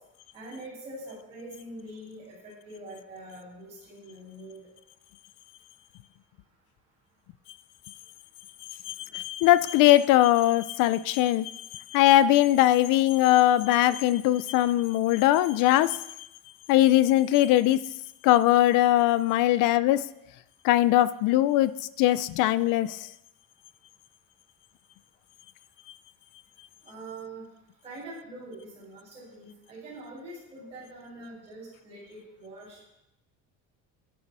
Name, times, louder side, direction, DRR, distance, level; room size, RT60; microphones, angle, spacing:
voice 1, 0.3-4.7 19.4-19.5 26.8-27.4 27.8-32.9, right 1 dB, 20° right, -9 dB, 6.5 m, -44 dB
voice 2, 8.9-16.0 16.7-17.8 18.2-20.0 20.6-21.7 22.0-23.0, left 14 dB, 65° left, 16 dB, 0.7 m, -21 dB
14.0 x 11.0 x 6.2 m, 0.87 s
cardioid pair, 180°, 34 cm